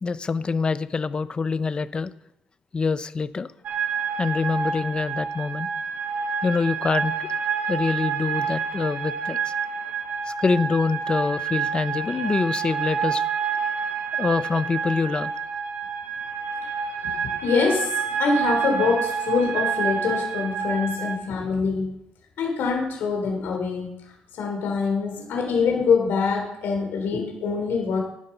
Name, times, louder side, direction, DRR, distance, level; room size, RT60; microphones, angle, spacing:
voice 1, 0.0-2.1 2.7-3.5 4.2-5.7 6.4-7.1 7.7-9.5 10.2-13.2 14.2-15.3, left 4 dB, 25° left, 14 dB, 0.6 m, -25 dB
sound 1, 3.6-21.2, right 6 dB, 55° right, 1.5 m, -28 dB
voice 2, 17.4-21.9 22.4-24.0 24.4-28.0, left 5 dB, 75° left, 1 dB, 3.2 m, -24 dB
11.5 x 10.0 x 5.4 m, 0.82 s
cardioid pair, 135°, 4 cm